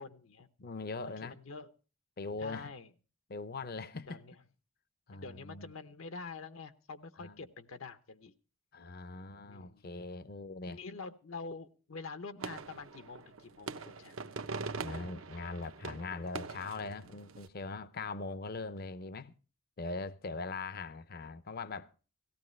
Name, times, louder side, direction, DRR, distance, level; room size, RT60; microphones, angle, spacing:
voice 1, 0.0-0.5 1.2-1.7 2.4-2.9 4.1-4.4 5.1-8.3 9.5-9.9 10.7-14.2, left 4 dB, 75° left, 0.8 m, -46 dB
voice 2, 0.6-1.4 2.2-2.7 3.3-4.2 5.1-5.7 7.2-7.5 8.7-10.8 14.8-19.3 19.8-21.9, left 3 dB, 50° left, 0.6 m, -41 dB
sound 1, 12.4-17.5, right 4 dB, 80° right, 0.8 m, -43 dB
17.5 x 14.5 x 3.1 m
head